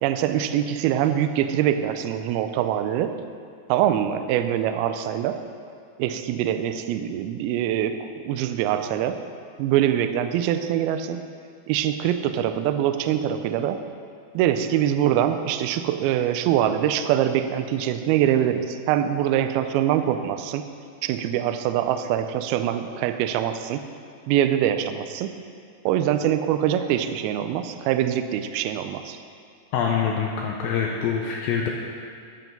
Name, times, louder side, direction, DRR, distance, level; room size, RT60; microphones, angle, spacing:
voice 1, 0.0-3.2 3.7-5.4 6.0-9.2 9.6-11.2 11.7-13.8 14.3-20.7 21.0-23.8 24.3-25.3 25.9-29.2, right 10 dB, 90° right, 9 dB, 2.2 m, -24 dB
voice 2, 29.7-31.7, left 7 dB, 85° left, 0 dB, 2.1 m, -25 dB
12.0 x 5.9 x 5.3 m, 2.3 s
omnidirectional pair, 5.0 m